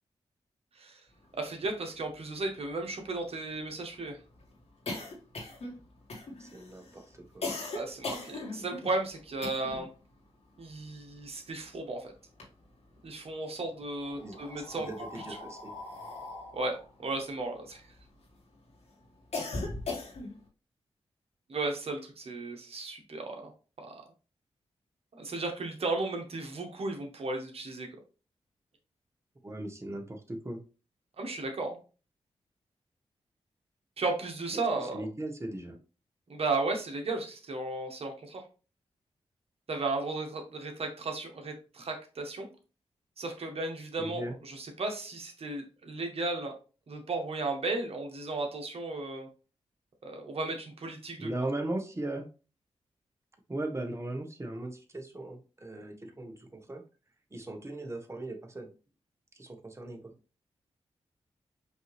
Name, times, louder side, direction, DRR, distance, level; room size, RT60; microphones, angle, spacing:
voice 1, 1.4-4.2 7.7-9.9 10.6-12.1 13.0-14.9 16.5-17.8 21.5-23.5 23.8-24.0 25.1-27.9 31.2-31.8 34.0-35.0 36.3-38.4 39.7-42.5 43.2-46.5 46.9-49.3 50.0-51.3, right 3 dB, 60° right, 3 dB, 1.2 m, -34 dB
sound 1, 1.7-1.8 2.1-2.2 2.5-10.0 10.2-11.8 12.1-13.1 13.8-18.3 18.7-20.5, left 3 dB, 70° left, 1.7 m, -40 dB
voice 2, 6.4-7.5 14.1-15.7 29.4-30.6 34.5-35.8 44.0-44.4 51.2-52.3 53.5-56.8 57.3-58.7 59.3-60.1, right 1 dB, 25° right, 5 dB, 1.1 m, -38 dB
5.3 x 2.8 x 3.2 m, 0.35 s
cardioid pair, 65°, 11 cm